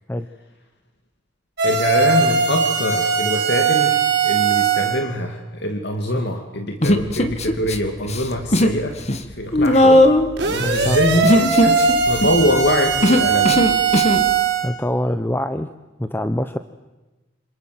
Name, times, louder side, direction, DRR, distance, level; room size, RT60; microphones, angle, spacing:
voice 1, 1.6-4.0 4.2-8.9 9.4-10.1 10.4-13.6, left 1 dB, 60° left, 4 dB, 2.4 m, -23 dB
sound 1, 1.6-5.0 10.4-14.7, right 6 dB, 60° right, 5.1 m, -19 dB
Human voice, 6.8-7.8 8.0-8.8 9.1-14.3, left 1 dB, 35° left, 1.8 m, -17 dB
voice 2, 10.6-11.0 14.6-15.7 16.0-16.6, left 1 dB, 10° left, 9 dB, 0.9 m, -24 dB
27.5 x 26.5 x 7.8 m, 1.1 s
head